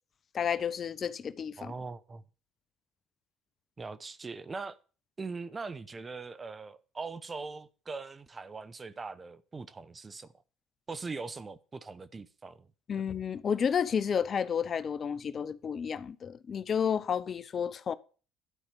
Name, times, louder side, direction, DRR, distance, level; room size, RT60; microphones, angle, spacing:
voice 1, 0.3-1.7 12.9-17.9, left 7 dB, 40° left, 0.6 m, -31 dB
voice 2, 1.6-2.2 3.8-4.8 5.2-10.3 10.9-12.7 12.9-13.0, right 4 dB, 25° right, 0.9 m, -41 dB
11.5 x 5.0 x 7.4 m
hypercardioid pair, 70°, 0 cm